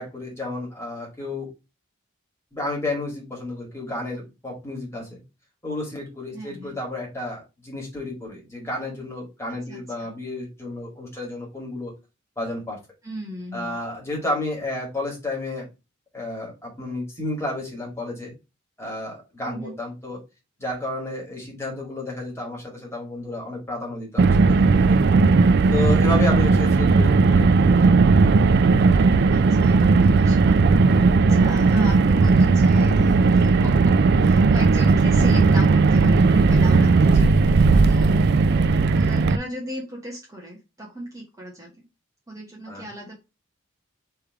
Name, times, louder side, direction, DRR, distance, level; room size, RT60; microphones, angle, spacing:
voice 1, 0.0-1.5 2.5-5.2 5.6-11.9 12.4-12.8 13.5-15.7 16.1-18.3 18.8-20.2 20.6-25.0 25.7-27.9 37.0-37.4 42.7-42.9, left 2 dB, 15° left, -3 dB, 2.0 m, -31 dB
voice 2, 6.3-6.8 9.7-10.1 13.0-13.8 19.4-19.7 29.3-30.6 31.2-37.4 37.9-38.3 38.9-41.8 42.3-43.2, equal, 15° right, -3 dB, 1.1 m, -36 dB
Car, 24.2-39.4, right 4 dB, 50° right, 0.3 m, -17 dB
3.4 x 3.3 x 4.6 m, 0.27 s
head